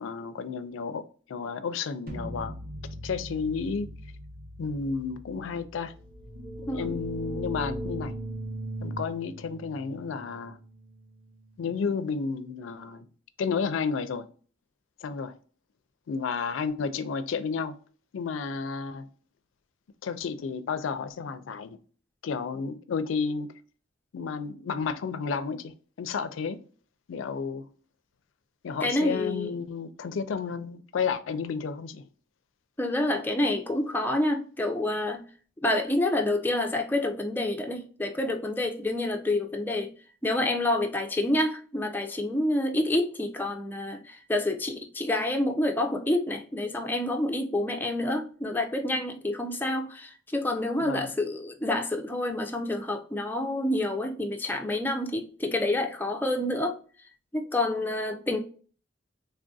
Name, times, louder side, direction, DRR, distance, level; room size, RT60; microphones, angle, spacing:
voice 1, 0.0-2.5 3.0-3.9 4.6-5.9 6.6-8.1 8.8-10.6 11.6-13.1 13.4-14.3 15.0-15.3 16.1-17.8 18.1-19.1 20.0-21.8 22.2-23.5 24.1-26.6 27.1-27.7 28.6-32.1 50.8-51.1, left 5 dB, 80° left, 0.4 m, -32 dB
sound 1, 2.1-8.1, equal, 45° right, 0.7 m, -43 dB
sound 2, 6.0-11.6, right 1 dB, 15° right, 1.1 m, -38 dB
voice 2, 28.8-29.5 32.8-35.2 35.6-39.9 40.2-56.8 57.3-58.4, left 1 dB, 10° left, 0.4 m, -28 dB
3.3 x 2.6 x 2.3 m
head